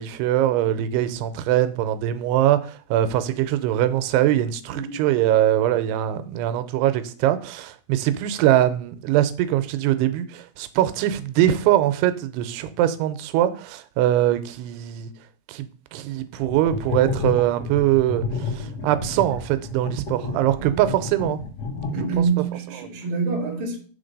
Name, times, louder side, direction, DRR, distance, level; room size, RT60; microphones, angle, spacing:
voice 1, 0.0-15.1 15.5-21.4, right 12 dB, 90° right, 2.7 m, -22 dB
voice 2, 4.7-5.0 20.6-20.8 21.9-23.8, right 5 dB, 45° right, 1.9 m, -26 dB
sound 1, 16.4-22.5, left 4 dB, 55° left, 1.1 m, -30 dB
6.4 x 3.9 x 5.2 m
omnidirectional pair, 4.6 m